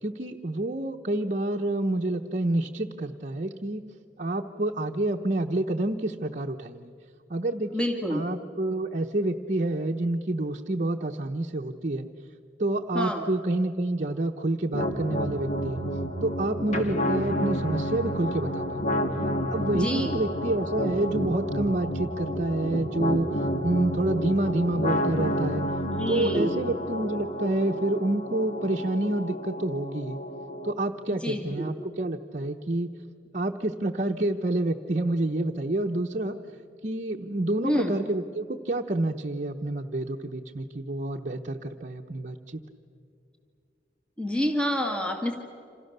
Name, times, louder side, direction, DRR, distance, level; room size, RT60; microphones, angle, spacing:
voice 1, 0.0-3.8 4.2-6.9 7.3-12.1 12.6-15.8 16.2-19.0 19.5-25.6 26.1-30.2 30.6-32.9 33.3-36.3 36.8-42.6, right 2 dB, 40° right, 3 dB, 0.9 m, -28 dB
voice 2, 7.7-8.3 12.9-13.3 19.7-20.2 25.9-26.6 31.1-31.7 37.6-37.9 44.2-45.4, equal, 5° left, 2 dB, 2.1 m, -28 dB
sound 1, 14.7-30.7, equal, 40° left, 2.1 m, -30 dB
28.5 x 27.0 x 6.8 m, 2.5 s
head